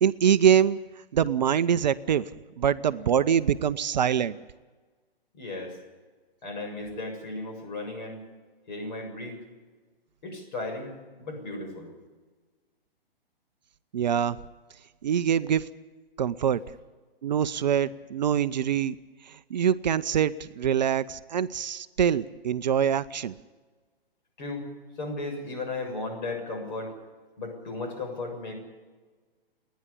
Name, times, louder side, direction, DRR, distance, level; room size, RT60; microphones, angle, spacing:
voice 1, 0.0-0.8 1.1-2.2 2.6-4.4 13.9-14.4 15.0-15.7 16.2-16.6 17.2-19.0 19.3-23.4, right 8 dB, 45° right, 13 dB, 0.7 m, -24 dB
voice 2, 5.3-5.8 6.4-8.3 8.7-9.4 10.2-10.9 11.2-11.9 24.4-24.7 25.0-26.9 27.4-28.5, left 2 dB, 50° left, 4 dB, 7.2 m, -35 dB
29.5 x 10.5 x 9.9 m, 1.4 s
figure-of-eight pair, 125°, 30 cm